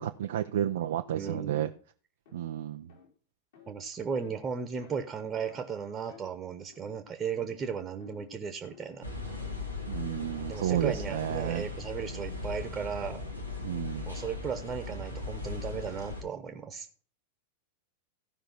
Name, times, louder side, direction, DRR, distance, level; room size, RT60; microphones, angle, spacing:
voice 1, 0.0-1.7 2.3-2.9 9.9-11.7 13.6-14.1, right 11 dB, 60° right, 7 dB, 0.6 m, -31 dB
voice 2, 1.1-1.7 3.7-9.1 10.5-13.2 14.0-16.9, right 6 dB, 20° right, 8 dB, 1.3 m, -36 dB
sound 1, 1.6-1.8 2.2-2.5 2.9-3.1 3.5-3.7 4.2-4.4 4.8-5.1 5.4-5.7 6.1-6.3 6.7-7.1 7.4-7.7 8.0-8.4 8.6-9.0 9.3-11.6, left 6 dB, 55° left, 4.4 m, -54 dB
sound 2, 9.0-16.2, left 3 dB, 85° left, 2.4 m, -38 dB
14.5 x 5.6 x 5.8 m, 0.41 s
figure-of-eight pair, 90°, 0 cm